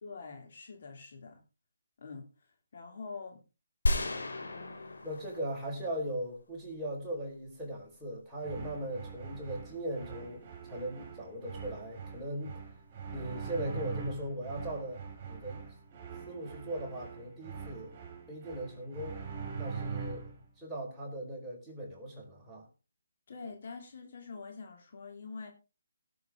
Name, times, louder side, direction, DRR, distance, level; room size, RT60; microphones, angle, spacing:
voice 1, 0.0-1.4 2.0-2.3 2.7-3.4 4.4-5.1 23.3-25.5, left 4 dB, 50° left, 3 dB, 3.0 m, -45 dB
sound 1, 3.9-6.1, left 1 dB, 75° left, 3.2 m, -34 dB
voice 2, 5.0-12.6 13.1-15.7 16.3-17.9 18.3-19.2 19.6-20.3 20.6-22.7, right 1 dB, 5° right, -5 dB, 4.9 m, -39 dB
sound 2, 8.4-20.4, right 5 dB, 30° right, 4.7 m, -43 dB
18.0 x 7.7 x 3.8 m, 0.31 s
figure-of-eight pair, 150°, 0 cm